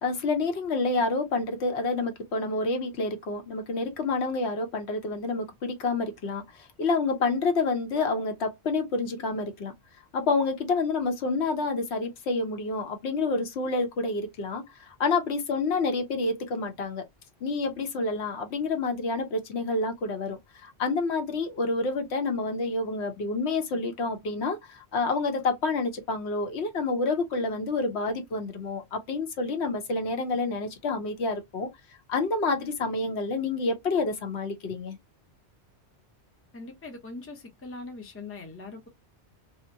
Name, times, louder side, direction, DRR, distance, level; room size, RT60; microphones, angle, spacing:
voice 1, 0.0-6.4 6.8-9.7 10.1-17.0 17.4-31.7 32.1-35.0, left 3 dB, 70° left, 1.0 m, -28 dB
voice 2, 36.5-38.9, left 3 dB, 15° left, 0.6 m, -41 dB
2.7 x 2.1 x 2.5 m
omnidirectional pair, 1.2 m